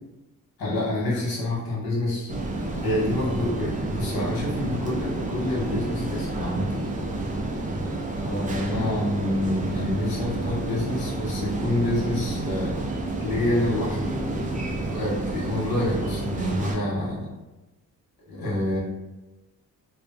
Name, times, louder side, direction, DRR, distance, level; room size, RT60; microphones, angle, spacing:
voice 1, 0.6-2.3 2.8-6.9 8.2-12.7 13.2-17.3 18.3-18.8, left 1 dB, 85° left, -6 dB, 1.1 m, -27 dB
sound 1, 2.3-16.8, right 2 dB, 25° right, 0.4 m, -30 dB
2.5 x 2.3 x 2.4 m, 1.1 s
cardioid pair, 80°, 35 cm